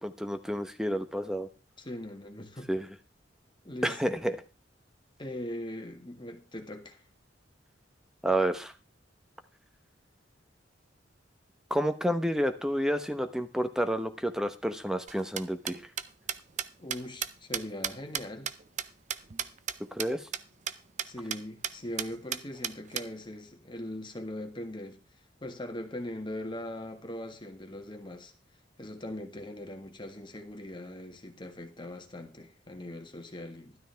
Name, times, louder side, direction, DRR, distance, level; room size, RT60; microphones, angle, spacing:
voice 1, 0.0-1.5 2.7-2.9 3.8-4.3 8.2-8.7 11.7-15.8 19.9-20.2, equal, 5° right, 1.0 m, -29 dB
voice 2, 1.8-2.7 3.6-4.0 5.2-7.0 16.8-18.5 21.0-25.0 25.4-28.3 28.8-33.8, left 1 dB, 25° left, 1.7 m, -40 dB
sound 1, 15.1-19.7 20.0-20.1 20.3-20.4 20.7-20.8 21.0-21.4 21.6-21.7 22.0-23.0, right 9 dB, 40° right, 0.6 m, -33 dB
12.5 x 12.5 x 3.4 m
head